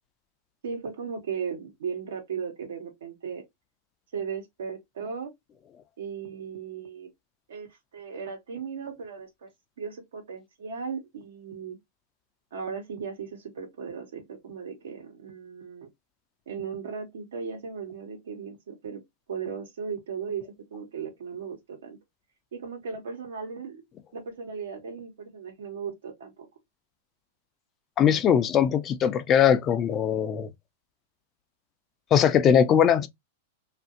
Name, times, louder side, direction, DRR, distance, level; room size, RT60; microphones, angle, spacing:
voice 1, 0.6-3.4 4.1-5.3 6.0-7.1 7.5-9.5 9.8-11.8 12.5-15.9 16.5-19.0 19.3-20.4 20.7-22.0 22.5-23.8 24.1-26.5, right 6 dB, 85° right, 1.1 m, -36 dB
voice 2, 28.0-30.5 32.1-33.1, left 8 dB, 30° left, 0.5 m, -21 dB
2.7 x 2.6 x 2.4 m
hypercardioid pair, 130°, 0 cm